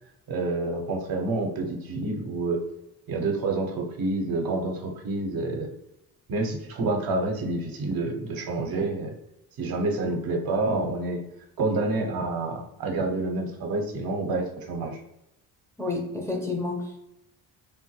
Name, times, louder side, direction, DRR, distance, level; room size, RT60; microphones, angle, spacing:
voice 1, 0.3-2.6 3.1-5.7 6.3-9.1 9.6-11.2 11.6-15.0, right 2 dB, 60° right, 2 dB, 0.8 m, -28 dB
voice 2, 15.8-17.0, left 3 dB, 5° left, -1 dB, 0.7 m, -30 dB
3.3 x 2.1 x 3.0 m, 0.85 s
supercardioid pair, 70°, 41 cm